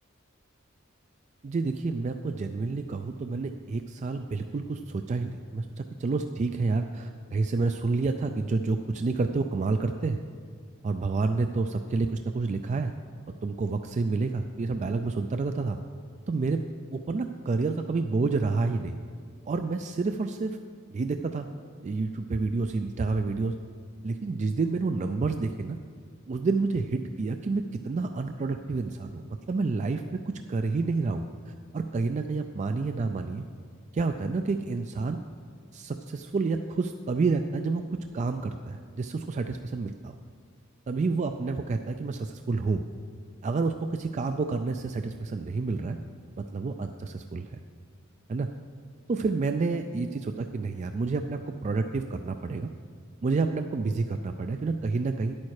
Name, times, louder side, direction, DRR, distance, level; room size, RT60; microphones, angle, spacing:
voice 1, 1.4-10.2 10.8-12.9 13.4-15.8 16.3-16.6 16.9-19.0 19.5-20.6 20.9-21.5 21.8-23.5 24.0-25.8 26.3-30.2 30.5-33.4 33.9-35.2 35.7-37.8 38.1-40.2 40.9-42.8 43.4-46.0 46.4-47.5 48.3-48.5 49.1-52.7 53.2-55.3, right 3 dB, 35° right, 7 dB, 0.3 m, -29 dB
10.5 x 8.6 x 4.8 m, 2.1 s
head